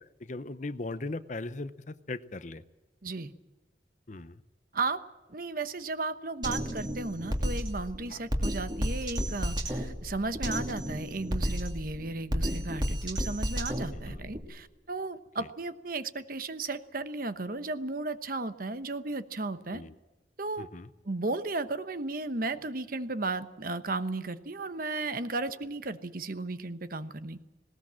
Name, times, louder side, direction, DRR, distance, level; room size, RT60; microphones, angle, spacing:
voice 1, 0.2-2.6 4.1-4.4 8.1-8.2 14.1-14.3 19.7-19.9 20.6-20.9, left 2 dB, 40° left, 13 dB, 0.7 m, -38 dB
voice 2, 3.0-3.3 4.7-5.0 5.3-19.8 20.4-20.7 21.0-27.4, right 3 dB, 50° right, 11 dB, 1.0 m, -34 dB
Drum kit, 6.4-14.4, equal, 25° right, 2.6 m, -32 dB
19.5 x 18.5 x 7.5 m, 1.1 s
head